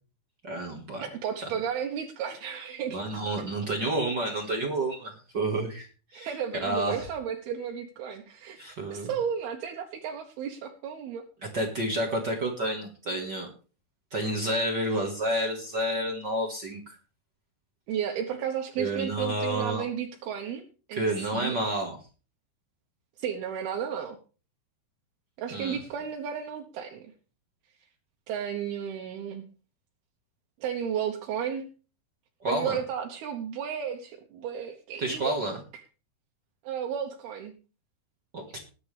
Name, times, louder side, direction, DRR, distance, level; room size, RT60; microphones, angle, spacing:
voice 1, 0.4-1.0 2.9-7.1 8.6-9.1 11.5-13.5 14.1-16.9 18.8-19.8 20.9-22.0 25.5-25.8 32.4-32.8 35.0-35.6 38.3-38.4, right 1 dB, 45° right, 1 dB, 1.5 m, -30 dB
voice 2, 1.0-3.0 3.4-3.5 6.1-11.2 17.9-21.6 23.2-24.2 25.4-27.1 28.3-29.4 30.6-31.7 32.5-35.4 36.6-37.5, right 8 dB, 75° right, 3 dB, 3.0 m, -33 dB
20.0 x 9.5 x 3.4 m, 0.36 s
omnidirectional pair, 4.7 m